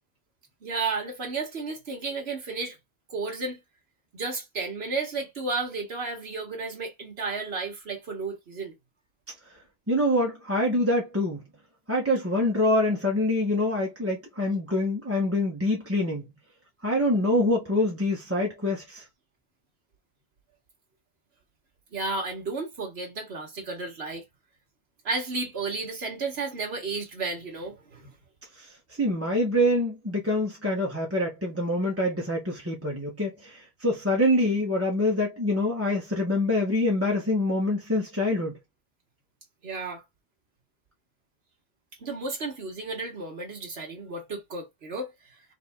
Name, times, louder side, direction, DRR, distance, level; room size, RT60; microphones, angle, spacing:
voice 1, 0.6-2.8 3.1-3.6 4.1-8.7 21.9-24.2 25.0-28.1 39.6-40.0 42.0-45.3, right 3 dB, 85° right, 1.6 m, -33 dB
voice 2, 9.9-11.4 11.9-16.3 16.8-19.0 28.6-38.6, left 1 dB, 15° right, 1.1 m, -25 dB
4.2 x 3.6 x 3.6 m
omnidirectional pair, 1.0 m